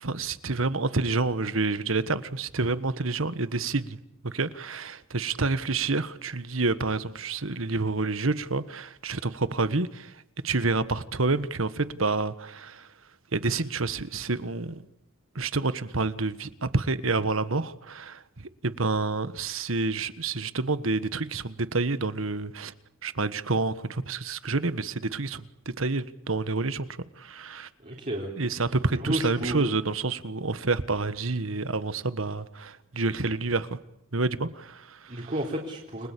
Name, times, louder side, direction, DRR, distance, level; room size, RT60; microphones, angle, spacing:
voice 1, 0.0-4.0 4.2-10.1 10.4-12.9 13.3-14.8 15.3-22.7 23.0-26.9 27.2-27.7 28.4-33.8 34.1-35.3, right 3 dB, 80° right, 1.5 m, -28 dB
voice 2, 27.8-28.3 29.1-29.6 35.1-36.1, equal, 40° right, 4.0 m, -31 dB
30.0 x 21.5 x 8.5 m
head